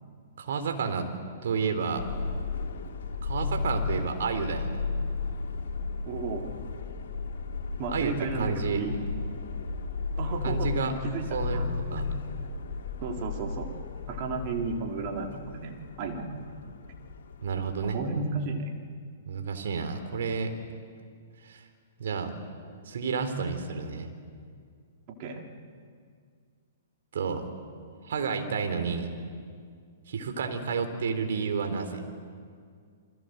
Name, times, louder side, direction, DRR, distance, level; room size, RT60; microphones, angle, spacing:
voice 1, 0.4-1.1 1.4-2.1 3.2-4.8 7.9-8.8 10.4-10.9 11.3-11.6 11.9-12.0 17.4-18.0 19.3-20.5 21.4-21.7 22.0-22.3 22.9-24.1 27.1-27.5 28.0-29.1 30.1-32.0, right 5 dB, 65° right, 6 dB, 3.6 m, -30 dB
Subway metro underground, 2.0-18.1, left 4 dB, 60° left, 2.7 m, -34 dB
voice 2, 6.1-6.5 7.8-9.0 10.2-11.7 12.0-12.1 13.0-13.7 14.1-16.4 17.8-18.7 25.2-25.4, right 3 dB, 40° right, 2 dB, 3.8 m, -33 dB
28.5 x 22.0 x 8.0 m, 2.1 s
figure-of-eight pair, 115°, 0 cm